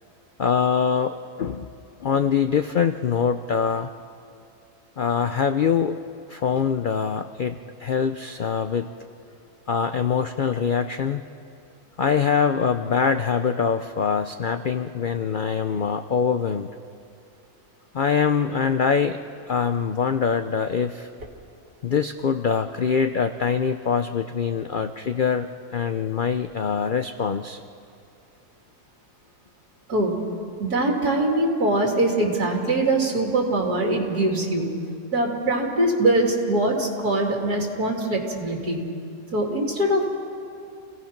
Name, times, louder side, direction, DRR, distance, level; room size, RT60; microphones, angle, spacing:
voice 1, 0.4-1.7 2.0-3.9 5.0-6.0 6.3-8.9 9.7-11.2 12.0-16.7 17.9-19.2 19.5-21.1 21.8-25.5 25.7-27.6, left 6 dB, 90° left, 8 dB, 0.4 m, -23 dB
voice 2, 29.9-30.2 30.6-34.8 35.1-38.8 39.3-40.1, right 1 dB, 75° right, 0 dB, 3.5 m, -22 dB
29.0 x 17.5 x 5.9 m, 2.5 s
omnidirectional pair, 1.7 m